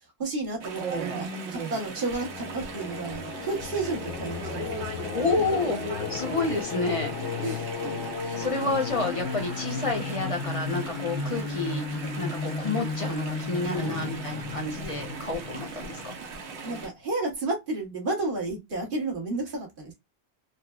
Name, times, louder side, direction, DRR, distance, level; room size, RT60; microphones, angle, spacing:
voice 1, 0.2-4.6 7.4-7.7 8.2-8.5 13.7-14.1 16.6-19.9, right 2 dB, 50° right, 1.4 m, -32 dB
Chatter / Stream, 0.6-16.9, right 4 dB, 85° right, 1.0 m, -38 dB
Singing, 2.1-16.8, left 5 dB, 90° left, 0.9 m, -34 dB
voice 2, 5.1-7.2 8.4-11.8 12.2-16.1, left 3 dB, 35° left, 0.7 m, -29 dB
3.9 x 2.2 x 2.2 m
omnidirectional pair, 1.1 m